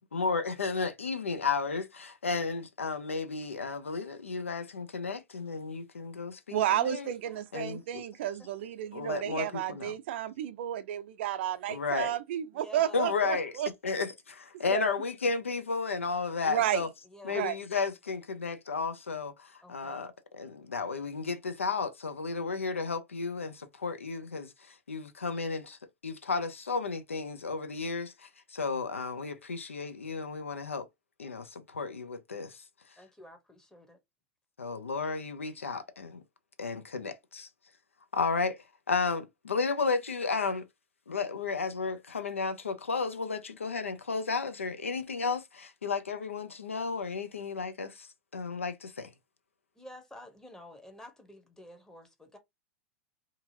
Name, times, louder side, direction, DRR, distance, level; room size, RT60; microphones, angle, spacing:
voice 1, 0.0-7.1 7.5-8.0 8.9-9.9 11.7-12.2 12.9-13.5 13.8-16.9 17.2-30.9 31.2-32.6 34.6-36.2 36.6-37.5 38.1-40.7 41.1-48.1 48.3-49.1, left 4 dB, 90° left, 0.5 m, -33 dB
voice 2, 6.5-13.7 14.7-14.9 16.5-16.8 17.3-17.6, right 11 dB, 60° right, 0.4 m, -32 dB
voice 3, 12.5-13.1 17.0-17.5 19.6-20.0 33.0-34.0 49.7-52.4, left 1 dB, 10° left, 0.8 m, -50 dB
2.6 x 2.5 x 2.7 m
hypercardioid pair, 95°, 7 cm